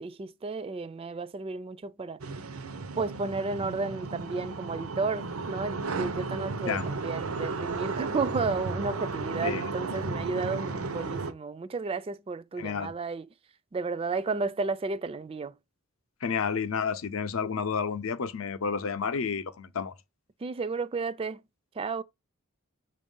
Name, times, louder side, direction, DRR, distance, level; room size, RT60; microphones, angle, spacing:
voice 1, 0.0-2.2 3.0-13.3 13.7-15.5 20.4-21.4 21.8-22.0, right 4 dB, 25° right, 0.3 m, -32 dB
sound 1, 2.2-11.3, right 3 dB, 85° right, 0.7 m, -34 dB
voice 2, 12.6-12.9 16.2-19.9, left 6 dB, 70° left, 0.6 m, -30 dB
7.0 x 2.5 x 5.3 m
head